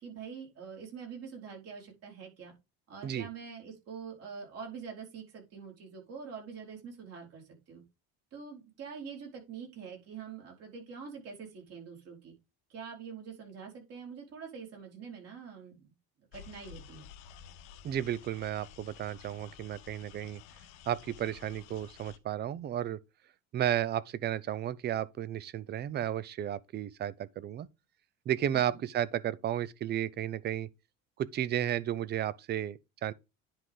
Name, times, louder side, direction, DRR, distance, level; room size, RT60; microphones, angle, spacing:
voice 1, 0.0-2.5 2.9-7.8 8.3-12.3 12.7-15.9 16.3-17.1 28.5-28.8, right 6 dB, 50° right, 4.7 m, -45 dB
sound 1, 16.3-22.2, left 8 dB, 80° left, 1.2 m, -52 dB
voice 2, 17.8-20.4 20.9-23.0 23.5-27.7 28.3-30.7 31.2-33.1, right 11 dB, 30° right, 0.5 m, -33 dB
10.0 x 4.9 x 3.7 m
cardioid pair, 145°, 32 cm